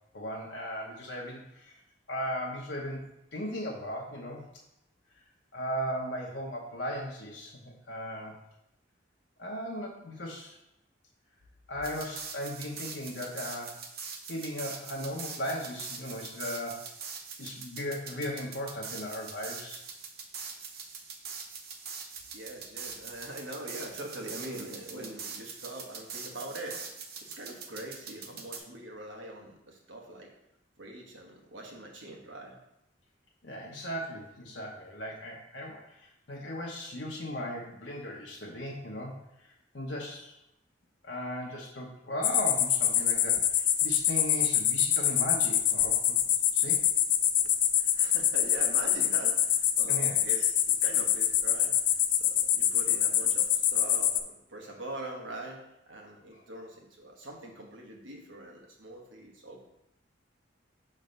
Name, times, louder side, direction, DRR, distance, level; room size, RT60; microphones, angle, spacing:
voice 1, 0.1-1.8 2.1-3.0 3.3-4.4 5.5-8.3 9.4-10.6 11.7-13.8 14.3-16.9 17.4-19.8 33.4-39.1 39.7-40.3 41.0-43.4 43.8-46.2 46.5-46.8 49.9-50.2 56.3-56.4, equal, 65° left, -2 dB, 0.9 m, -37 dB
sound 1, 11.8-28.6, right 5 dB, 55° right, 0.7 m, -43 dB
voice 2, 22.3-26.9 27.2-30.3 30.8-32.6 47.8-51.8 52.1-59.6, right 1 dB, 85° right, 0 dB, 1.3 m, -43 dB
sound 2, 42.2-54.2, left 10 dB, 45° left, 0.4 m, -26 dB
6.2 x 3.3 x 5.2 m, 0.83 s
head